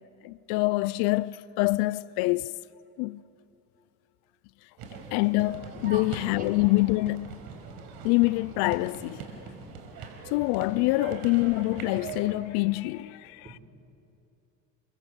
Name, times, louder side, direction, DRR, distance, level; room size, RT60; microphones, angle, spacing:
voice 1, 0.2-2.6 3.0-3.2 5.1-7.4 8.0-9.3 10.3-13.6, left 21 dB, 75° left, 0.6 m, -26 dB
sound 1, 4.8-12.2, right 5 dB, 70° right, 5.3 m, -41 dB
voice 2, 7.7-8.1 9.3-10.3 13.3-13.6, right 3 dB, 20° right, 4.9 m, -47 dB
29.5 x 24.0 x 8.1 m
supercardioid pair, 95°, 39 cm